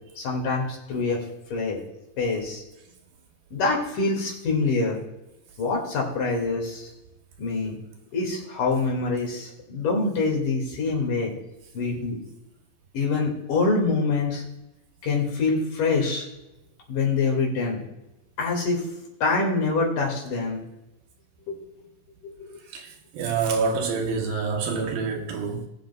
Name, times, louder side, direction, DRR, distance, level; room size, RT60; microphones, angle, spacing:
voice 1, 0.2-1.3 1.5-1.8 2.2-2.6 3.5-5.0 5.6-6.9 7.4-7.8 8.1-11.3 11.7-12.2 12.9-14.4 15.0-16.3 16.9-17.8 18.4-18.9 19.2-20.6 21.5-21.6 22.2-22.5, left 3 dB, 65° left, 3.6 m, -25 dB
voice 2, 22.7-25.7, right 5 dB, 75° right, 2.7 m, -27 dB
19.0 x 8.2 x 2.3 m
omnidirectional pair, 4.3 m